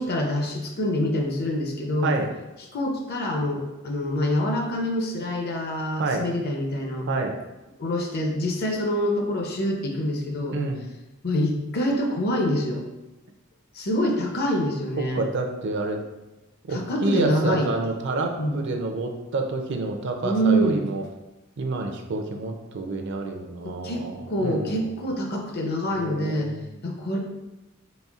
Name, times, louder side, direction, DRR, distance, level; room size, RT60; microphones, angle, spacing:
voice 1, 0.0-2.2 2.7-7.1 7.8-10.6 11.2-12.9 13.7-15.2 16.7-17.7 18.4-18.7 20.2-20.8 23.6-26.5 26.8-27.2, equal, 50° left, 1 dB, 0.6 m, -26 dB
voice 2, 7.1-7.4 10.5-10.8 15.1-16.0 16.7-21.0 21.6-24.9 25.9-26.7, right 2 dB, 60° right, 4 dB, 0.4 m, -28 dB
4.1 x 3.6 x 2.4 m, 1.0 s
head